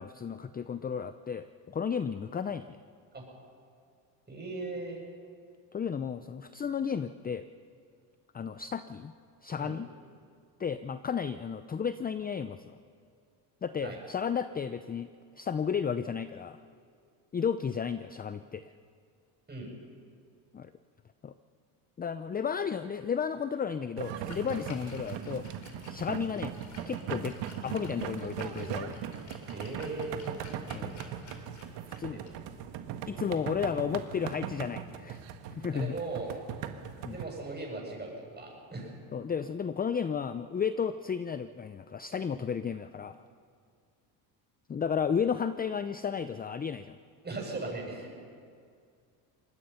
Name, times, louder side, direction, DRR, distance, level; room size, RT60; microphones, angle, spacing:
voice 1, 0.0-2.8 5.7-7.5 8.3-9.1 9.4-9.9 10.6-12.8 13.6-15.1 15.4-16.6 17.3-18.6 20.5-20.7 21.2-21.3 22.0-25.5 25.9-26.5 26.9-27.4 27.6-29.0 30.7-30.9 32.0-32.2 33.1-35.2 35.5-36.0 37.0-37.2 39.1-43.2 44.7-47.0, left 7 dB, 20° left, 12 dB, 0.6 m, -33 dB
voice 2, 4.3-5.0 9.6-9.7 13.8-14.0 19.5-19.7 29.5-30.4 35.7-36.3 37.1-39.0 47.2-48.1, right 2 dB, 20° right, -1 dB, 7.9 m, -38 dB
sound 1, 24.0-37.3, right 9 dB, 70° right, 1.7 m, -39 dB
Splash splatter, 24.1-33.9, left 4 dB, 40° left, 3.9 m, -54 dB
25.5 x 19.5 x 5.8 m, 2.3 s
supercardioid pair, 95°, 45 cm